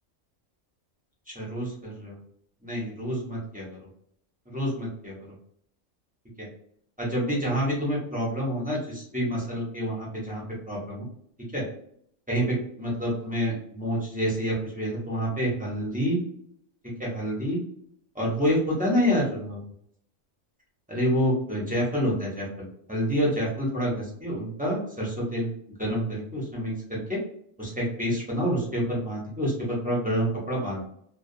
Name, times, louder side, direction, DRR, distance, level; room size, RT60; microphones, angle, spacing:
voice 1, 1.3-2.2 2.6-3.7 4.5-5.2 6.4-6.5 7.0-11.0 11.5-11.6 12.3-16.2 17.0-17.6 18.1-19.6 20.9-25.5 25.8-27.2 27.6-30.8, equal, 10° right, -5 dB, 0.5 m, -28 dB
2.3 x 2.2 x 2.6 m, 0.67 s
omnidirectional pair, 1.4 m